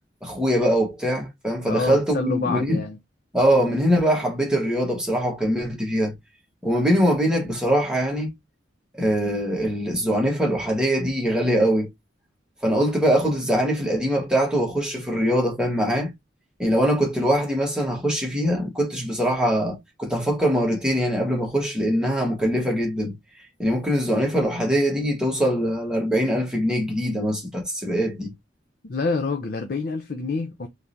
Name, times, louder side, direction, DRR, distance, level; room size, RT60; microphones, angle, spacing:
voice 1, 0.2-2.8 3.3-6.1 6.6-8.3 9.0-11.9 12.6-16.1 16.6-23.1 23.6-28.3, equal, 5° right, 1.5 m, -22 dB
voice 2, 1.7-3.0 28.9-30.7, left 3 dB, 55° left, 0.6 m, -27 dB
3.6 x 3.2 x 2.7 m
head